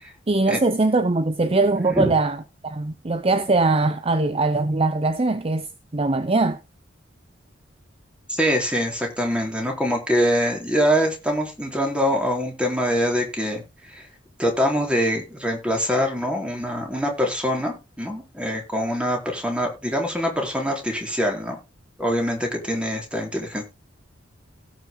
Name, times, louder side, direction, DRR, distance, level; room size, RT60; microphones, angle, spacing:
voice 1, 0.3-2.4 2.6-5.7 5.9-6.6, right 3 dB, 30° right, 0.6 m, -21 dB
voice 2, 8.3-13.6 13.9-14.0 14.4-21.6 22.0-23.6, equal, 5° right, 4.1 m, -24 dB
17.5 x 6.3 x 3.8 m
head